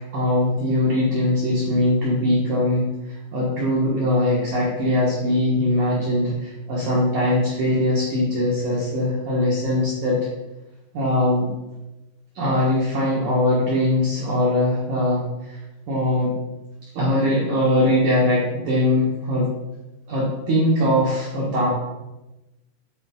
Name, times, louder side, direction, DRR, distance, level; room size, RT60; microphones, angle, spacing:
voice 1, 0.1-10.2 10.9-11.5 12.3-15.6 15.9-16.3 16.9-19.5 20.1-21.7, left 1 dB, 85° right, -6 dB, 1.7 m, -21 dB
10.0 x 4.1 x 3.7 m, 1.0 s
omnidirectional pair, 5.9 m